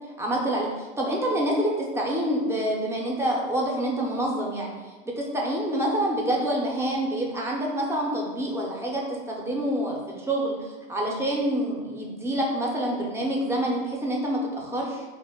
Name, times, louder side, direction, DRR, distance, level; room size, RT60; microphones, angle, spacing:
voice 1, 0.2-4.7 5.2-15.0, right 1 dB, 10° right, -2 dB, 0.5 m, -27 dB
2.2 x 2.1 x 3.4 m, 1.3 s
hypercardioid pair, 95°, 29 cm